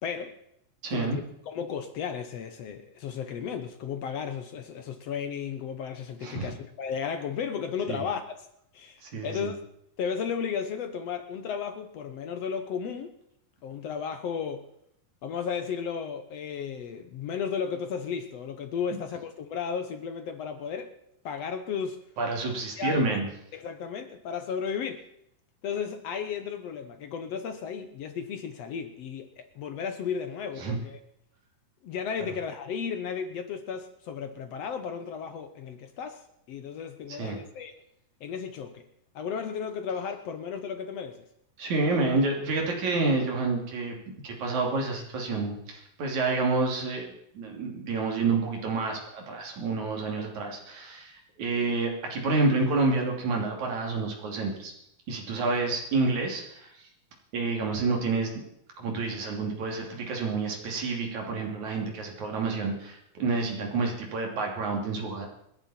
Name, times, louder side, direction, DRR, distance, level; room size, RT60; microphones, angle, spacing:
voice 1, 0.0-0.4 0.9-8.5 8.7-9.6 10.0-13.1 13.6-14.6 15.2-20.9 21.3-22.0 22.8-23.2 23.5-25.0 25.6-31.0 31.8-37.7 38.2-38.9 39.2-41.2 50.2-50.3 55.5-55.6, left 7 dB, 65° left, 1.9 m, -34 dB
voice 2, 0.8-1.2 6.2-6.5 7.9-8.0 9.0-9.5 22.2-23.3 30.6-30.8 37.1-37.4 41.6-44.0 44.2-51.1 51.4-54.7 55.1-56.7 57.3-58.3 58.8-65.3, right 3 dB, 65° right, 4.3 m, -29 dB
27.5 x 10.5 x 4.4 m
omnidirectional pair, 3.7 m